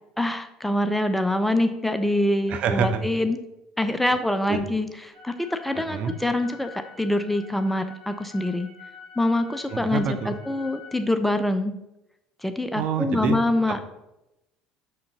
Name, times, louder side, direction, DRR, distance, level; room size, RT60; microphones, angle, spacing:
voice 1, 0.2-3.4 3.8-4.9 5.2-8.7 9.2-11.8 12.4-13.8, left 1 dB, 5° left, 8 dB, 0.5 m, -25 dB
voice 2, 2.5-3.0 4.5-4.7 5.9-6.1 9.7-10.3 12.7-13.4, right 6 dB, 45° right, 6 dB, 0.8 m, -26 dB
sound 1, 5.1-11.0, left 5 dB, 90° right, 2.8 m, -46 dB
6.5 x 5.7 x 4.1 m, 0.91 s
figure-of-eight pair, 60°, 3 cm